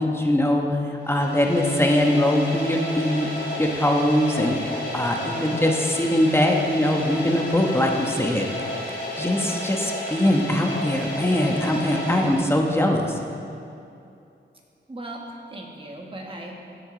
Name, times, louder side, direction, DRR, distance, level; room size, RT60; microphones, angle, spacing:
voice 1, 0.0-3.3 3.6-8.5 9.1-13.2, left 1 dB, 10° left, 1 dB, 1.1 m, -22 dB
sound 1, 1.0-13.0, left 1 dB, 50° left, 3.1 m, -32 dB
voice 2, 14.9-16.5, right 1 dB, 25° right, -1 dB, 1.6 m, -37 dB
16.0 x 8.1 x 4.0 m, 2.6 s
wide cardioid pair, 125°, 20 cm